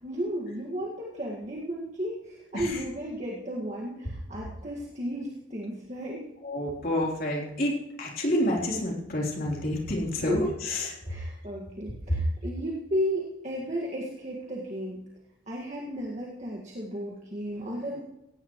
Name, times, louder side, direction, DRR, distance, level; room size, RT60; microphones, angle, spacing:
voice 1, 0.0-6.2 10.1-10.4 11.0-15.0 15.5-18.0, equal, 35° right, -2 dB, 2.0 m, -34 dB
voice 2, 6.4-10.9 12.1-12.2, left 1 dB, 45° left, -2 dB, 3.7 m, -28 dB
17.5 x 16.5 x 3.2 m, 0.93 s
head